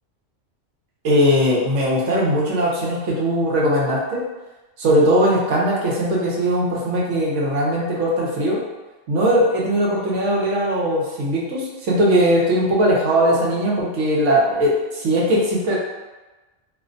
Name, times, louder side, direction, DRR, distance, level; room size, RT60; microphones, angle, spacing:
voice 1, 1.0-4.2 4.8-8.6 9.1-15.8, equal, 75° right, -4 dB, 1.0 m, -19 dB
2.5 x 2.1 x 2.5 m, 1.2 s
omnidirectional pair, 1.3 m